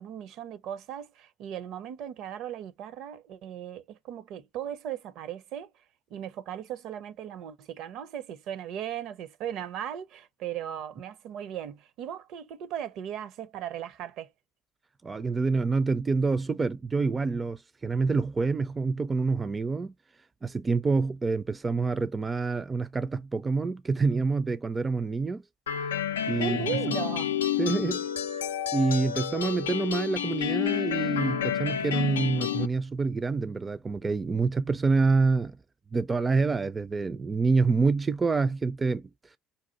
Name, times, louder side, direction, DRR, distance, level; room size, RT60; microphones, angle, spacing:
voice 1, 0.0-5.7 6.1-14.3 26.4-27.4, right 10 dB, 65° right, 0.6 m, -37 dB
voice 2, 15.0-19.9 20.4-25.4 26.3-26.9 27.6-28.0 28.7-35.6 35.9-39.1, right 4 dB, 25° right, 0.4 m, -27 dB
sound 1, 25.7-32.7, left 10 dB, 85° left, 0.4 m, -30 dB
5.3 x 2.4 x 3.8 m
hypercardioid pair, 65°, 0 cm